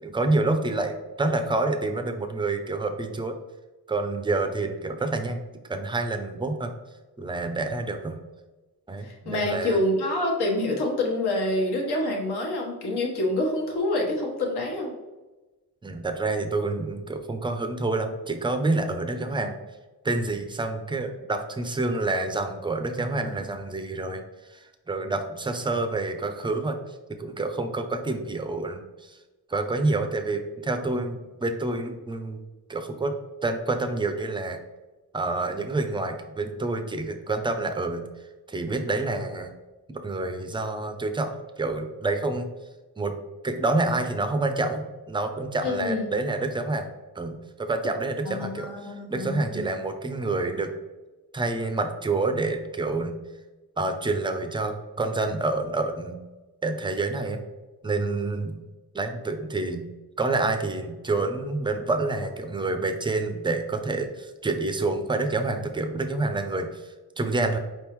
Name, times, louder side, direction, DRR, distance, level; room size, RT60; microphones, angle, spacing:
voice 1, 0.0-3.4 3.9-5.4 5.7-6.7 7.2-8.2 8.9-9.8 15.8-19.6 20.0-24.2 24.5-26.8 27.1-29.2 29.5-32.4 32.7-33.2 33.4-34.6 35.1-38.0 38.5-39.5 39.9-41.3 41.6-42.5 43.0-43.1 43.4-46.9 47.1-50.7 51.3-53.1 53.8-56.2 56.6-57.4 57.8-58.5 58.9-59.9 60.2-67.6, right 2 dB, 15° right, 7 dB, 0.3 m, -28 dB
voice 2, 9.0-14.9 45.6-46.1 48.4-49.4, left 1 dB, 80° left, 0 dB, 1.3 m, -27 dB
4.8 x 3.5 x 3.0 m, 1.2 s
wide cardioid pair, 155°, 39 cm